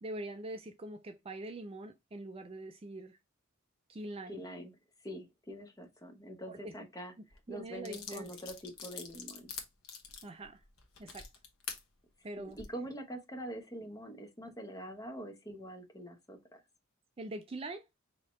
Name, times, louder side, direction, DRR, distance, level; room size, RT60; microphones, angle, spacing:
voice 1, 0.0-3.2 3.9-4.4 6.5-6.7 7.2-8.3 10.2-10.6 11.0-11.3 12.2-12.6 17.2-17.8, right 2 dB, 25° right, 0.4 m, -43 dB
voice 2, 4.3-4.7 5.0-7.1 7.5-9.5 12.4-16.6, equal, 15° left, 0.9 m, -44 dB
sound 1, 7.3-7.4 7.8-11.8 12.4-12.7, left 6 dB, 80° left, 1.1 m, -45 dB
5.0 x 2.8 x 3.1 m
head